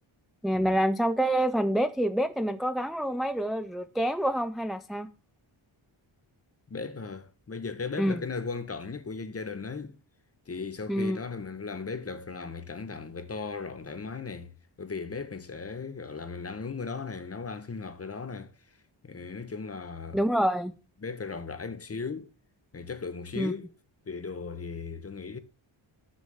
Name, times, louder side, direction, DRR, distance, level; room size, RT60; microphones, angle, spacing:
voice 1, 0.4-5.1 8.0-8.2 10.9-11.2 20.1-20.7 23.4-23.5, equal, ahead, 0.4 m, -27 dB
voice 2, 6.7-10.0 10.5-18.8 19.0-20.2 21.0-22.3 22.7-23.7 24.1-25.4, left 4 dB, 30° left, 0.9 m, -37 dB
6.4 x 6.3 x 5.5 m
wide cardioid pair, 100°, 49 cm